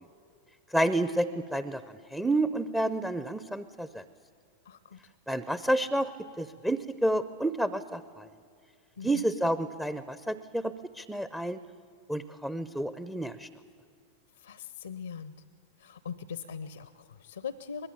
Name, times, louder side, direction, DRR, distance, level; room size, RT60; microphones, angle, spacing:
voice 1, 0.7-1.8 2.1-4.0 5.3-6.1 6.4-8.3 9.0-11.6 12.1-13.5, right 1 dB, 5° right, 14 dB, 0.7 m, -30 dB
voice 2, 4.6-5.0 9.0-9.3 14.4-15.3 15.8-17.9, left 6 dB, 70° left, 15 dB, 0.8 m, -41 dB
24.5 x 20.5 x 8.6 m, 2.2 s
figure-of-eight pair, 90°, 0 cm